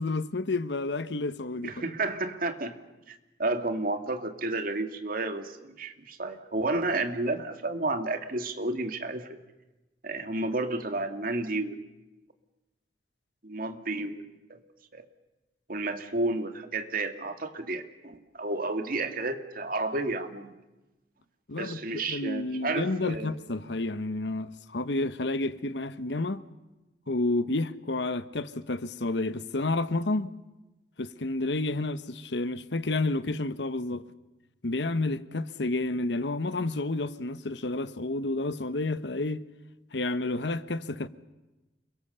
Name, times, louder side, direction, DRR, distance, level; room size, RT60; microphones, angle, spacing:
voice 1, 0.0-1.9 21.5-26.4 27.1-30.3 31.0-34.0 34.6-39.4 39.9-41.1, left 2 dB, 90° left, 1.1 m, -30 dB
voice 2, 1.6-2.7 3.1-9.3 10.0-11.8 13.4-14.6 14.9-15.1 15.7-20.5 21.6-23.3, right 2 dB, 55° right, 2.1 m, -31 dB
29.5 x 23.0 x 6.9 m
head